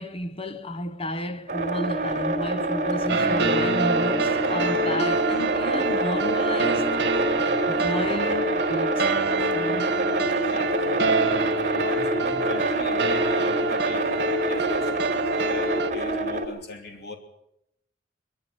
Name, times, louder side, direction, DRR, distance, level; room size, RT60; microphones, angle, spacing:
voice 1, 0.0-7.0 7.7-9.3 9.5-9.9, left 1 dB, 30° left, 1.1 m, -32 dB
sound 1, 1.5-16.5, right 2 dB, 40° right, 4.1 m, -27 dB
sound 2, 3.1-15.9, right 2 dB, 65° right, 1.8 m, -26 dB
voice 2, 10.2-14.1 14.5-17.2, left 1 dB, 60° left, 3.2 m, -38 dB
22.5 x 14.5 x 9.1 m
head